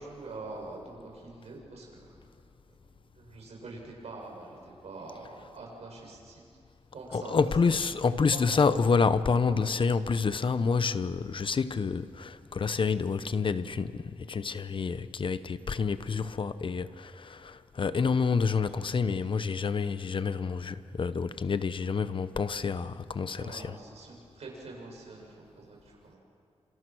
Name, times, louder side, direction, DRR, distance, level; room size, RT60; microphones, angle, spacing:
voice 1, 0.0-2.1 3.1-6.4 6.9-7.8 8.3-8.7 9.5-9.8 23.4-26.2, right 3 dB, 75° right, 7.6 m, -44 dB
voice 2, 7.1-23.8, left 5 dB, 50° left, 0.9 m, -28 dB
29.0 x 27.5 x 6.3 m
wide cardioid pair, 110°, 11 cm